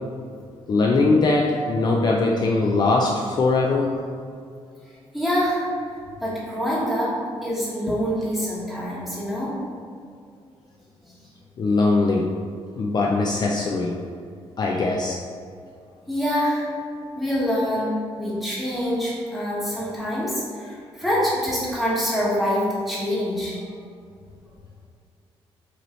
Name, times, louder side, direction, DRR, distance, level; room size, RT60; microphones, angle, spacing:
voice 1, 0.7-3.9 11.6-12.3 12.8-14.0 14.6-15.2, left 3 dB, 40° left, -1 dB, 0.4 m, -21 dB
voice 2, 5.1-5.6 6.2-7.1 7.4-9.6 16.1-16.7 17.1-23.6, equal, ahead, -8 dB, 1.4 m, -25 dB
5.3 x 2.9 x 3.1 m, 2.3 s
cardioid pair, 110°, 11 cm